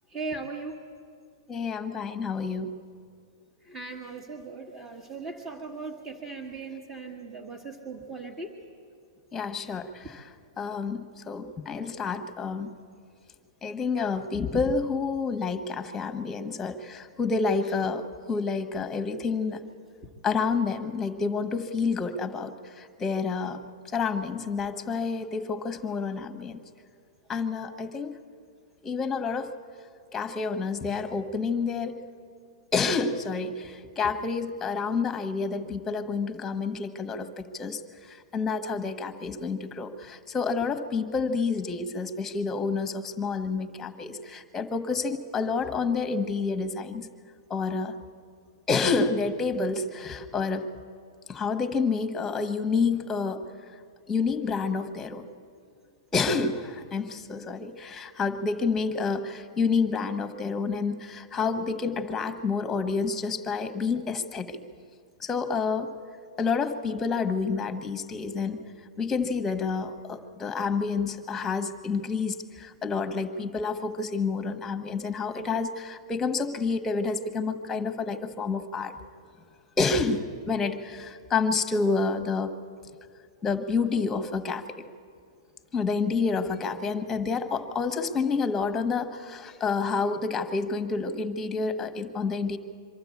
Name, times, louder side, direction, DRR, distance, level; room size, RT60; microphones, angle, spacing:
voice 1, 0.1-0.8 3.6-8.5 20.0-20.1, right 3 dB, 20° right, -2 dB, 1.7 m, -38 dB
voice 2, 1.5-2.8 9.3-10.2 10.6-12.7 13.6-19.6 20.2-23.6 23.9-26.6 27.3-28.1 28.8-29.5 30.1-32.0 32.7-47.1 47.5-48.0 48.7-50.7 51.3-53.4 54.1-55.3 56.1-64.6 65.2-65.9 66.4-68.6 69.0-78.9 79.8-82.5 83.4-84.8 85.7-92.6, left 4 dB, 15° left, 9 dB, 1.3 m, -29 dB
24.0 x 12.5 x 8.5 m, 2.2 s
hypercardioid pair, 135°, 2 cm